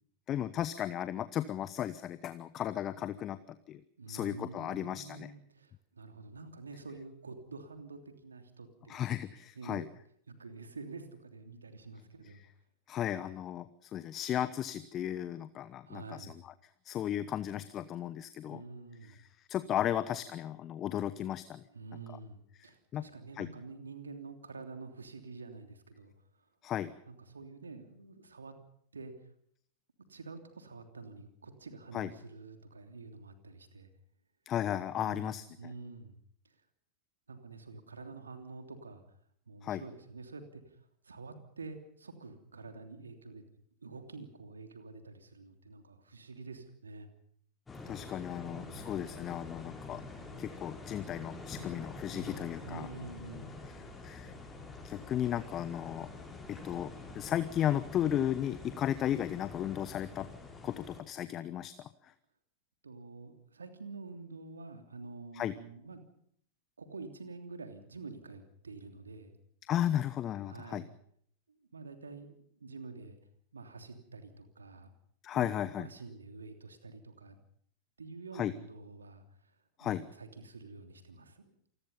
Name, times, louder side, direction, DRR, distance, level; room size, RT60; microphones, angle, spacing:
voice 1, 0.3-3.8 4.1-5.3 8.9-9.8 12.9-16.5 16.8-18.6 19.1-19.2 19.5-21.6 22.9-23.0 23.4-23.5 26.6-26.9 31.9-32.1 34.5-35.4 39.6-39.8 47.9-50.0 50.4-52.9 54.0-54.3 54.8-56.1 56.5-60.3 60.6-62.1 65.3-65.5 69.7-70.8 75.2-75.9 78.3-78.5 79.8-80.0, left 11 dB, 30° left, 15 dB, 0.9 m, -35 dB
voice 2, 4.0-9.0 9.5-9.8 10.3-12.4 15.8-16.4 18.5-19.2 21.7-26.5 27.1-28.5 28.9-29.1 30.1-33.9 35.0-36.2 36.4-36.6 37.3-39.0 39.5-43.4 43.8-47.1 48.4-49.0 52.1-53.5 62.8-66.0 66.8-69.3 70.5-70.9 71.5-72.3 72.6-73.2 73.5-74.9 75.3-77.4 78.0-81.5, right 3 dB, 75° right, 7 dB, 3.1 m, -48 dB
sound 1, 47.7-61.0, left 3 dB, 15° left, 6.6 m, -46 dB
27.5 x 20.5 x 5.5 m, 0.66 s
figure-of-eight pair, 90°, 0 cm